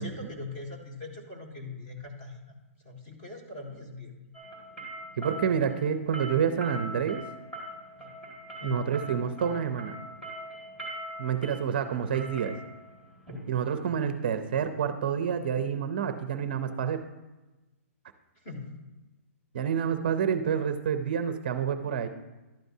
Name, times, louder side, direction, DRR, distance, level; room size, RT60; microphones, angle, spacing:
voice 1, 0.0-2.4 2.8-4.1 8.0-8.1 8.6-9.1 18.4-18.8, left 3 dB, 30° left, 0 dB, 1.7 m, -41 dB
sound 1, 4.3-14.2, right 1 dB, 5° left, 2.0 m, -42 dB
voice 2, 5.2-7.2 8.6-10.0 11.2-12.5 13.5-17.0 19.5-22.1, right 7 dB, 40° right, 9 dB, 0.5 m, -28 dB
11.5 x 9.0 x 2.7 m, 1.1 s
hypercardioid pair, 175°, 8 cm